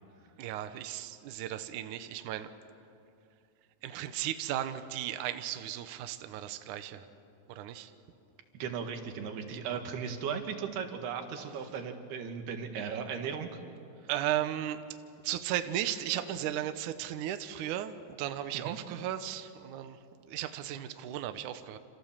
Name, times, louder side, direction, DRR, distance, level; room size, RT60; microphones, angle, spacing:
voice 1, 0.4-2.5 3.8-7.1 7.5-7.9 9.7-9.8 14.1-14.8 15.2-21.8, right 12 dB, 70° right, 9 dB, 2.1 m, -35 dB
voice 2, 8.5-13.6 14.0-14.1 18.5-18.8, right 6 dB, 85° right, 5 dB, 3.8 m, -37 dB
28.0 x 28.0 x 7.4 m, 2.5 s
omnidirectional pair, 4.5 m